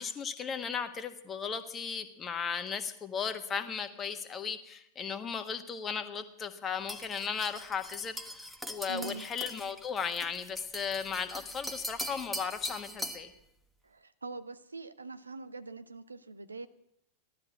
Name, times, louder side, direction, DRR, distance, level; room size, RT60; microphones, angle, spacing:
voice 1, 0.0-13.3, left 6 dB, 25° left, 8 dB, 1.4 m, -36 dB
sound 1, 6.9-13.3, equal, ahead, 1.2 m, -42 dB
voice 2, 8.9-9.3 13.8-16.7, right 4 dB, 80° right, 12 dB, 0.8 m, -43 dB
16.0 x 12.5 x 7.2 m, 0.77 s
figure-of-eight pair, 90°, 0 cm